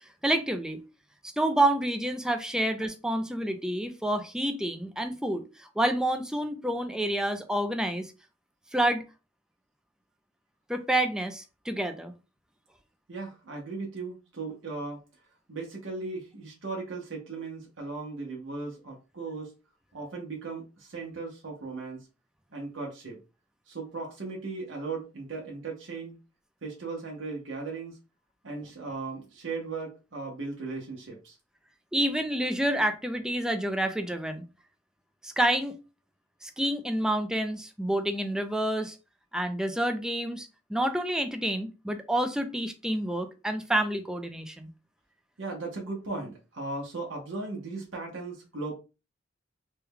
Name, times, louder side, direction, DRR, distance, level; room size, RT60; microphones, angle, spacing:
voice 1, 0.2-0.8 1.4-8.1 8.7-9.0 10.7-12.1 31.9-34.4 35.2-35.8 36.4-39.0 39.3-44.7, right 1 dB, 5° right, 0.4 m, -28 dB
voice 2, 13.1-15.0 15.5-19.5 19.9-22.1 22.5-23.2 23.7-26.2 26.6-28.0 28.4-31.4 45.4-48.7, right 3 dB, 80° right, 0.8 m, -37 dB
3.2 x 2.2 x 3.5 m
head